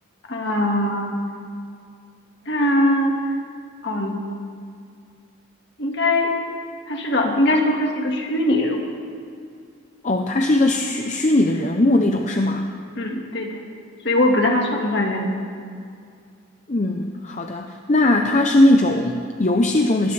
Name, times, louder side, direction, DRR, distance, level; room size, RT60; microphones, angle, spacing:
voice 1, 0.3-1.2 2.5-3.2 3.8-4.2 5.8-6.3 6.9-8.9 13.0-13.6 14.0-15.3, left 1 dB, 55° left, 1 dB, 1.8 m, -21 dB
voice 2, 10.0-12.7 16.7-20.1, left 1 dB, 35° left, 3 dB, 0.6 m, -19 dB
19.5 x 16.5 x 3.4 m, 2.3 s
head